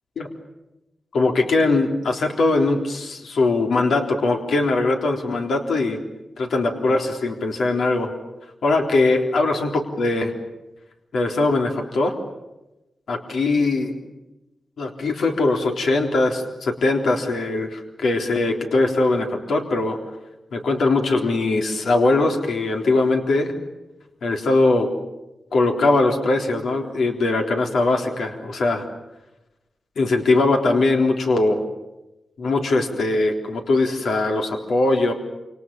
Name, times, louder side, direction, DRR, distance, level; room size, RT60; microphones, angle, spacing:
voice 1, 1.1-6.0 6.4-8.1 8.6-10.3 11.1-12.2 13.1-13.9 14.8-20.0 20.5-23.6 24.2-24.9 25.5-28.9 30.0-31.6 32.4-35.1, left 2 dB, 80° left, 3 dB, 3.7 m, -21 dB
28.5 x 28.0 x 7.0 m, 0.99 s
wide cardioid pair, 140°, 0 cm